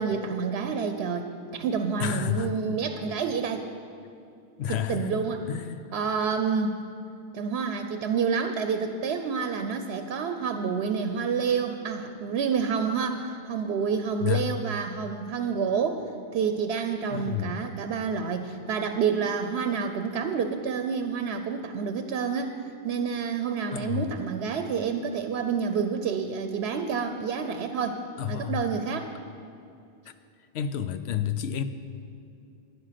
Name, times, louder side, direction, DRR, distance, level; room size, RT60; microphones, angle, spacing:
voice 1, 0.0-3.6 4.7-5.5 5.9-6.7 7.3-16.0 16.3-22.6 22.8-28.0 28.3-29.1, right 6 dB, 80° right, 7 dB, 0.8 m, -28 dB
voice 2, 2.0-2.5 4.6-5.2 5.5-5.9 14.2-14.5 17.1-17.5 23.7-24.1 28.2-28.6 30.5-31.6, left 10 dB, 85° left, 11 dB, 0.9 m, -30 dB
10.5 x 9.8 x 5.8 m, 2.6 s
omnidirectional pair, 1.1 m